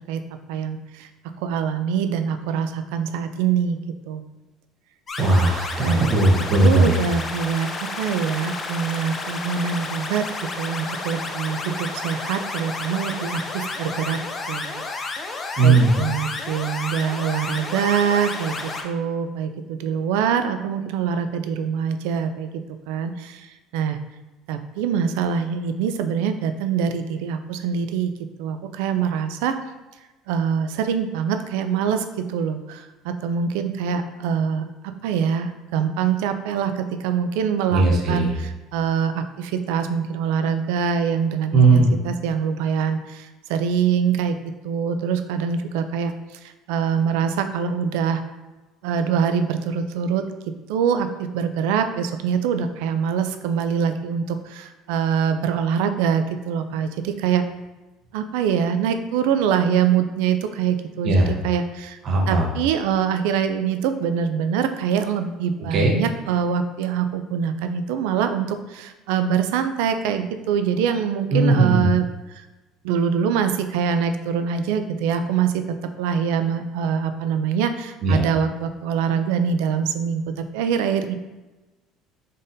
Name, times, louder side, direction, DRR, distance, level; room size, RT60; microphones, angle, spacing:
voice 1, 0.5-1.1 1.4-3.8 4.1-4.2 5.8-6.1 6.6-10.3 10.6-14.2 14.5-14.8 15.3-22.5 22.9-23.5 23.7-24.0 24.5-28.1 28.4-29.6 30.3-34.7 35.0-44.4 44.6-46.1 46.4-48.2 48.8-50.3 50.7-57.5 58.1-62.0 62.3-72.0 72.3-72.4 72.8-75.7 76.0-81.1, right 7 dB, 90° right, 9 dB, 0.3 m, -24 dB
sound 1, 5.1-18.8, left 3 dB, 30° left, 0.5 m, -31 dB
voice 2, 5.2-6.9 15.6-15.9 37.7-38.3 41.5-41.9 61.0-61.3 62.0-62.5 65.7-65.9 71.3-71.8 78.0-78.2, right 3 dB, 50° right, 0 dB, 0.7 m, -17 dB
3.9 x 3.7 x 2.6 m, 1.1 s
cardioid pair, 110°, 0 cm